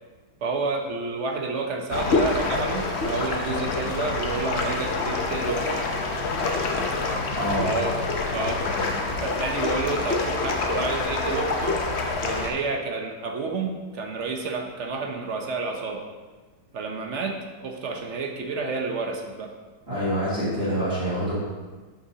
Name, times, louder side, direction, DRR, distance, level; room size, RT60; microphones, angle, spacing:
voice 1, 0.4-5.8 7.6-8.0 8.3-8.7 9.2-11.8 12.2-16.0 16.7-19.5, right 4 dB, 50° right, 2 dB, 1.0 m, -30 dB
sound 1, 1.9-12.5, left 3 dB, 55° left, 0.8 m, -26 dB
voice 2, 19.9-21.3, equal, 35° right, -9 dB, 2.8 m, -26 dB
11.5 x 5.9 x 2.8 m, 1.3 s
omnidirectional pair, 1.9 m